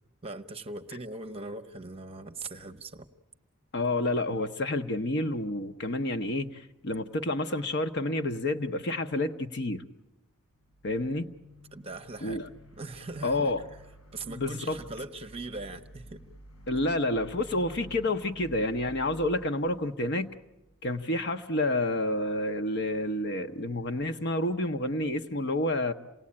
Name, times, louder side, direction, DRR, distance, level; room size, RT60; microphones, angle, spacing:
voice 1, 0.2-3.1 11.7-12.4 12.7-13.7 14.1-16.2, right 2 dB, 25° right, 0.9 m, -40 dB
voice 2, 3.7-9.8 10.8-11.3 12.2-12.5 13.2-13.6 14.3-14.8 16.7-20.3 20.8-25.9, left 1 dB, 50° left, 0.9 m, -29 dB
sound 1, 10.6-20.8, equal, 85° left, 4.5 m, -51 dB
28.0 x 18.5 x 8.6 m
head